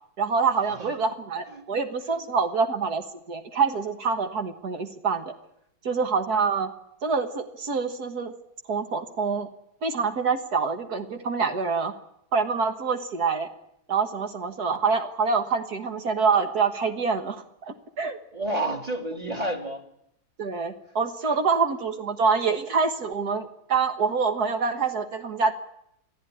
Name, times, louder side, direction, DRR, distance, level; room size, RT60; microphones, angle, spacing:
voice 1, 0.2-5.3 5.9-6.7 7.0-8.3 8.7-9.5 9.8-11.9 12.3-13.5 13.9-18.2 20.4-25.5, right 5 dB, 65° right, 1.9 m, -26 dB
voice 2, 18.3-19.8 21.2-21.4, right 1 dB, 20° right, 2.8 m, -30 dB
24.0 x 14.5 x 9.9 m
omnidirectional pair, 1.8 m